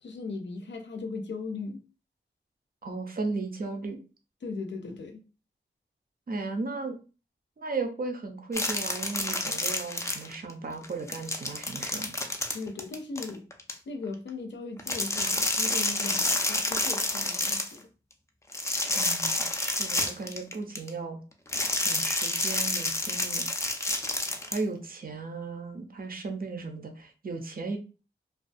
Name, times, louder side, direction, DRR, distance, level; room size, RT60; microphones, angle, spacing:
voice 1, 0.0-1.8 4.4-5.2 12.5-13.5 13.9-17.9, left 3 dB, 65° left, 0.5 m, -38 dB
voice 2, 2.8-4.0 6.3-7.0 7.6-12.2 18.9-21.2 21.8-23.5 24.5-27.8, right 3 dB, 50° right, 0.5 m, -35 dB
sound 1, 8.5-10.5 10.8-13.7 14.8-17.8 18.5-20.9 21.5-24.6, left 2 dB, 15° left, 0.4 m, -29 dB
2.4 x 2.3 x 2.5 m
wide cardioid pair, 80°, 20 cm